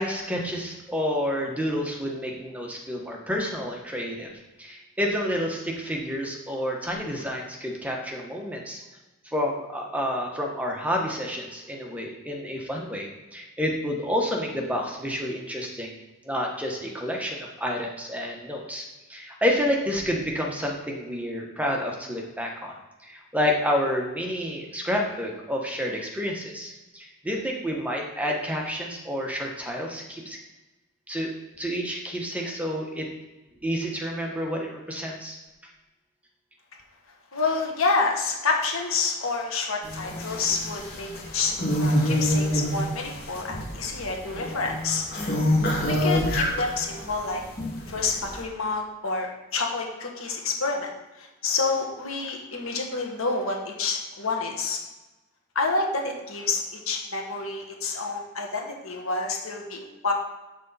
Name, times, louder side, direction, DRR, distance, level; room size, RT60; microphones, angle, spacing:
voice 1, 0.0-4.3 4.6-8.8 9.2-15.9 16.2-22.8 23.0-30.4 31.1-31.3 31.6-33.1 33.6-35.4, equal, 5° right, 0 dB, 1.0 m, -29 dB
voice 2, 37.3-45.0 45.9-47.4 47.9-50.9 51.2-54.8 55.5-60.1, left 4 dB, 70° left, 1 dB, 1.6 m, -28 dB
sound 1, 39.8-47.1 47.4-48.4, left 1 dB, 45° left, 2.2 m, -26 dB
7.9 x 6.3 x 4.1 m, 1.1 s
head